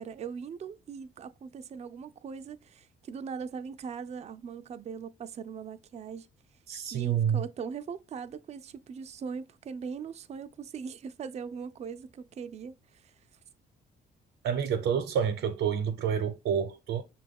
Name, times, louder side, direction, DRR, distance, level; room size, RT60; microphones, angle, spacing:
voice 1, 0.0-6.3 6.9-13.1, right 6 dB, 35° right, 0.4 m, -40 dB
voice 2, 6.7-7.4 14.4-17.0, right 8 dB, 85° right, 0.6 m, -28 dB
5.9 x 2.3 x 3.5 m
cardioid pair, 90°, 20 cm